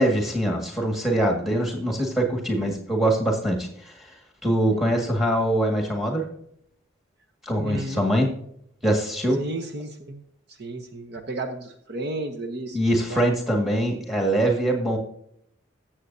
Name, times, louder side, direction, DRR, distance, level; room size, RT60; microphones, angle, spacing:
voice 1, 0.0-3.9 4.4-6.3 7.4-8.3 8.8-9.4 12.7-15.0, right 1 dB, ahead, 1 dB, 1.8 m, -23 dB
voice 2, 7.6-8.0 9.4-10.2 10.5-12.8 13.1-13.3, right 2 dB, 50° right, 4 dB, 0.9 m, -33 dB
15.0 x 7.4 x 2.7 m, 0.70 s
head